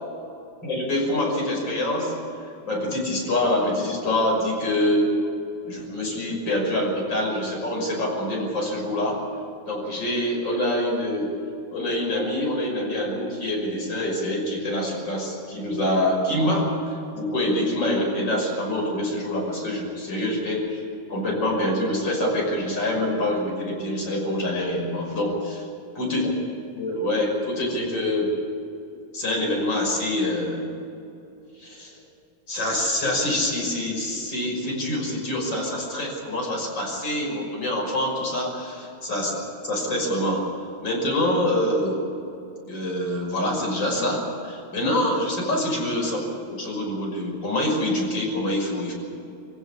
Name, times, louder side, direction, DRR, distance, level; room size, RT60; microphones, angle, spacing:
voice 1, 0.6-2.1 2.6-5.1 5.6-9.2 9.6-11.3 11.7-20.8 21.1-25.3 25.9-26.4 26.8-28.3 29.1-30.7 31.6-32.0 32.5-39.4 39.6-40.4 40.8-42.0 42.7-46.2 46.5-48.9, left 1 dB, 35° left, -1 dB, 6.6 m, -25 dB
24.5 x 16.5 x 8.5 m, 2.7 s
omnidirectional pair, 3.3 m